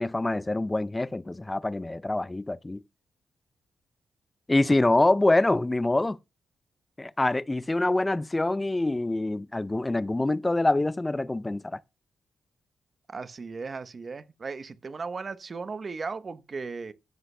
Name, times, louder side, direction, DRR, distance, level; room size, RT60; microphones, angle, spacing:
voice 1, 0.0-2.8 4.5-6.2 7.0-11.8, left 2 dB, 20° left, 0.4 m, -25 dB
voice 2, 13.1-16.9, right 4 dB, 45° right, 0.9 m, -36 dB
15.5 x 7.9 x 2.2 m
cardioid pair, 70°, 0 cm